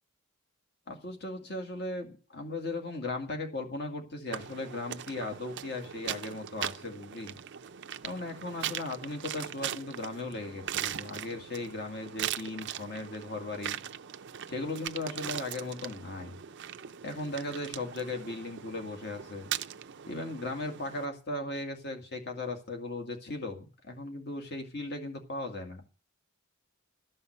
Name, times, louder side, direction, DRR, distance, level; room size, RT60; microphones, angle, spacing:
voice 1, 0.9-7.4 8.0-13.8 14.5-16.3 17.0-19.5 20.1-25.8, left 2 dB, 50° left, 3 dB, 2.0 m, -37 dB
sound 1, 4.3-21.1, right 10 dB, 55° right, 0.5 m, -40 dB
13.5 x 5.6 x 7.9 m, 0.37 s
head